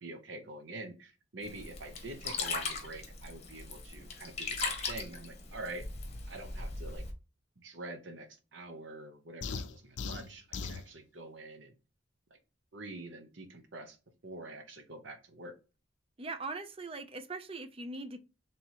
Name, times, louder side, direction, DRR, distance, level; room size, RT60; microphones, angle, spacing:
voice 1, 0.0-5.9 6.3-7.1 7.6-11.7 12.7-14.0 14.2-15.5, right 2 dB, 75° right, 0.9 m, -46 dB
Sink (filling or washing), 1.4-7.1, left 4 dB, 35° left, 1.0 m, -39 dB
sound 1, 9.4-10.9, left 4 dB, 70° left, 0.5 m, -38 dB
voice 2, 16.2-18.2, right 3 dB, 30° right, 0.5 m, -40 dB
3.4 x 2.9 x 4.2 m
head